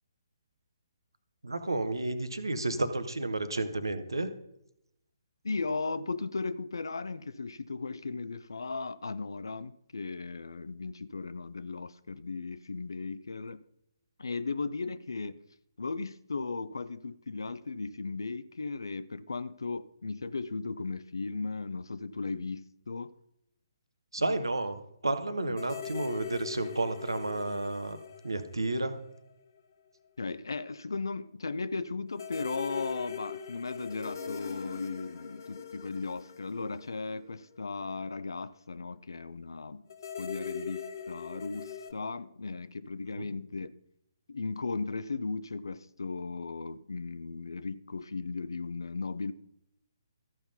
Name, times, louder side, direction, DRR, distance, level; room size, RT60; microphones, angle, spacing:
voice 1, 1.4-4.3 24.1-28.0 28.2-28.9 43.2-43.3, right 2 dB, 80° right, 1.1 m, -31 dB
voice 2, 5.4-13.6 14.2-15.4 15.8-23.1 30.2-39.8 40.2-43.7 44.3-49.3, left 4 dB, 70° left, 0.4 m, -36 dB
sound 1, 25.6-29.3 29.6-29.7 32.2-37.6 39.9-41.9, left 7 dB, 50° left, 0.9 m, -41 dB
14.0 x 5.7 x 5.4 m
figure-of-eight pair, 135°, 2 cm